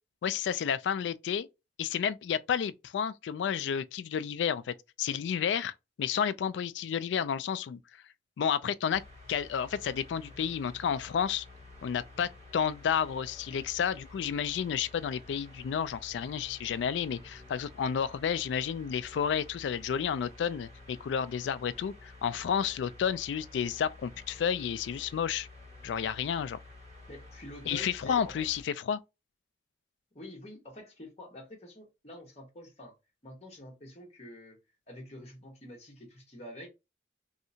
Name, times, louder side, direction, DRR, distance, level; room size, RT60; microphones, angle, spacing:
voice 1, 0.2-1.5 1.8-7.8 8.4-9.0 9.3-11.5 11.8-25.5 25.8-26.6 27.7-29.0, left 8 dB, 80° left, 0.3 m, -31 dB
sound 1, 8.9-28.6, left 2 dB, 40° right, 2.0 m, -51 dB
voice 2, 27.1-28.4 30.1-32.9 33.2-34.6 34.9-36.7, left 1 dB, 35° left, 1.1 m, -47 dB
3.2 x 2.8 x 2.7 m
head